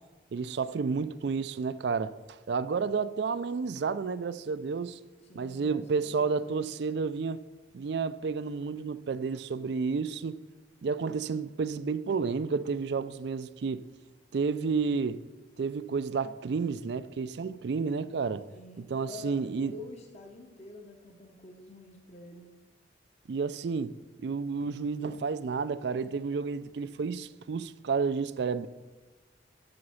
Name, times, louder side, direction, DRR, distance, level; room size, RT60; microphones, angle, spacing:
voice 1, 0.3-5.0 5.3-7.4 7.7-10.4 10.8-13.8 14.3-15.2 15.6-18.4 18.8-19.7 23.3-23.9 24.2-28.7, right 5 dB, 60° right, 0.4 m, -31 dB
voice 2, 5.3-6.7 18.5-22.5, left 1 dB, 35° left, 0.9 m, -47 dB
7.9 x 7.0 x 5.6 m
head